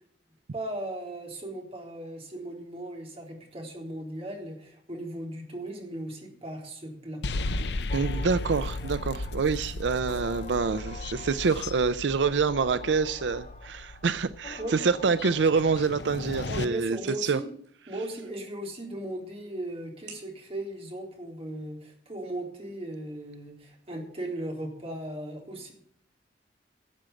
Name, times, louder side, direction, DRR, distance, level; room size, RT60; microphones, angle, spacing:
voice 1, 0.5-7.2 14.6-14.8 16.5-17.5 17.9-25.7, right 1 dB, 35° right, 0 dB, 3.8 m, -37 dB
sound 1, 7.2-16.7, left 2 dB, 70° left, 0.7 m, -35 dB
sound 2, 7.9-16.6, left 3 dB, 45° left, 0.9 m, -46 dB
voice 2, 7.9-17.4, right 5 dB, 85° right, 13 dB, 0.5 m, -26 dB
sound 3, 15.8-21.8, right 5 dB, 70° right, 6.1 m, -57 dB
13.0 x 7.7 x 8.4 m, 0.63 s
head